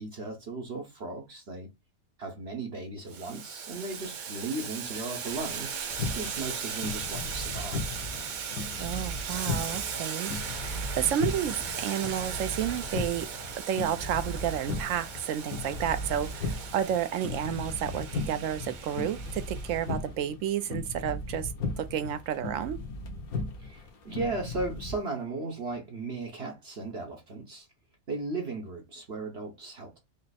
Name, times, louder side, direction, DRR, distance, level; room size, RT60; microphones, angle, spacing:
voice 1, 0.0-1.7 2.2-5.7 6.1-8.0 23.6-27.7 28.1-30.0, right 3 dB, 50° right, 1.2 m, -36 dB
Boiling, 3.1-19.9, right 7 dB, 85° right, 0.4 m, -38 dB
sound 1, 5.9-25.0, left 2 dB, 85° left, 1.4 m, -37 dB
voice 2, 8.8-13.3 13.6-21.5 21.8-22.8, right 10 dB, 70° right, 0.9 m, -31 dB
5.4 x 2.1 x 4.1 m
omnidirectional pair, 1.5 m